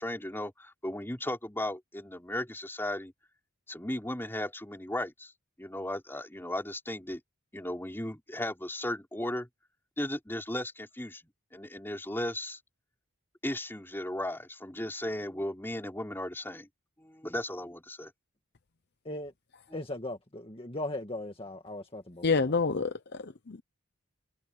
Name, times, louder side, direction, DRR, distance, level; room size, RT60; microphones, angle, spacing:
voice 1, 0.0-3.1 3.7-5.3 5.6-7.2 7.5-9.5 10.0-11.2 11.5-12.6 13.4-16.7 17.0-18.1, left 1 dB, 10° left, 3.8 m, -36 dB
voice 2, 19.7-22.5, left 1 dB, 25° left, 1.8 m, -38 dB
voice 3, 22.2-23.6, left 4 dB, 50° left, 0.7 m, -28 dB
open air
head